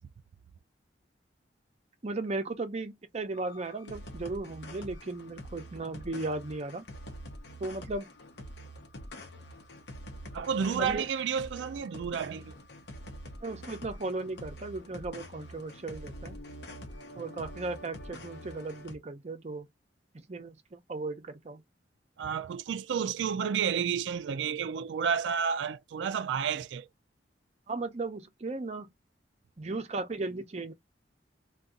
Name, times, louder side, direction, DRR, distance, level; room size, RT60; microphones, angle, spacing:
voice 1, 2.0-6.9 7.6-8.1 10.8-11.0 13.4-16.4 17.2-19.7 20.1-21.6 27.7-28.9 29.6-30.7, right 2 dB, 40° right, 0.6 m, -36 dB
sound 1, 3.3-19.0, equal, 65° left, 0.8 m, -46 dB
voice 2, 10.3-12.6 22.2-26.9, right 7 dB, 85° right, 0.3 m, -31 dB
2.7 x 2.3 x 3.7 m
head